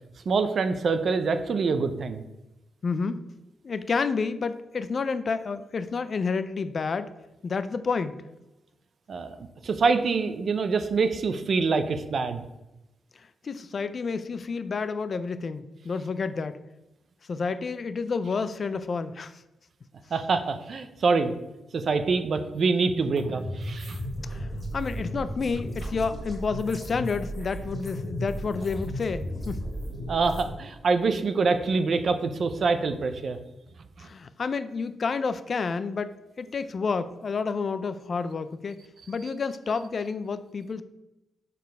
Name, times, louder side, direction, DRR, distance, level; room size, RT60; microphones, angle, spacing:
voice 1, 0.3-2.2 9.1-9.4 9.6-12.4 20.1-21.3 21.7-24.0 30.1-33.4, right 4 dB, 45° right, 9 dB, 0.5 m, -25 dB
voice 2, 2.8-3.2 3.6-7.1 7.4-8.2 13.4-16.6 17.3-19.4 24.3-24.5 24.7-29.7 34.0-40.8, left 5 dB, 40° left, 12 dB, 0.4 m, -30 dB
sound 1, 23.2-30.5, equal, 5° left, 1.5 m, -34 dB
6.5 x 4.1 x 5.3 m, 0.96 s
wide cardioid pair, 170°, 0 cm